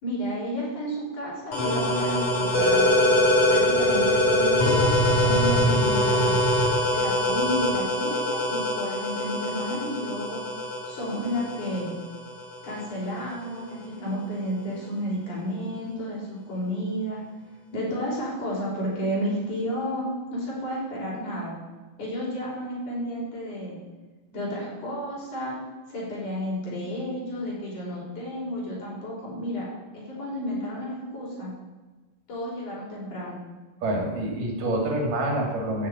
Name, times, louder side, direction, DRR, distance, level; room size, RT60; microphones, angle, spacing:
voice 1, 0.0-3.1 3.5-6.3 6.9-10.5 10.9-11.9 12.6-17.2 17.7-21.5 22.0-23.8 24.3-25.6 25.9-29.7 29.9-31.5 32.3-33.4, equal, 70° left, -5 dB, 7.0 m, -31 dB
sound 1, 1.5-12.9, left 1 dB, 50° left, 4.7 m, -23 dB
voice 2, 33.8-35.9, right 1 dB, 85° right, 0 dB, 4.8 m, -27 dB
14.0 x 7.3 x 9.1 m, 1.3 s
omnidirectional pair, 3.7 m